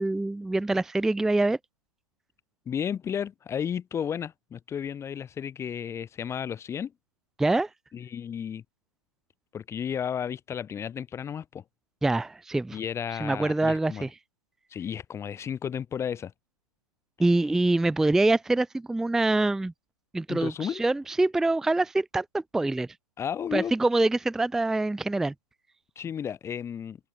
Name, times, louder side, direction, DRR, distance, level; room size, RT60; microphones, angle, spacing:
voice 1, 0.0-1.6 7.4-7.7 12.0-12.8 13.1-14.1 17.2-19.7 20.1-22.9 23.5-25.3, right 2 dB, ahead, 0.7 m, -25 dB
voice 2, 2.7-6.9 7.9-8.6 9.5-11.6 12.7-14.1 14.7-16.3 20.3-20.8 23.2-23.7 26.0-27.0, left 8 dB, 15° left, 4.6 m, -33 dB
figure-of-eight pair, 120°, 20 cm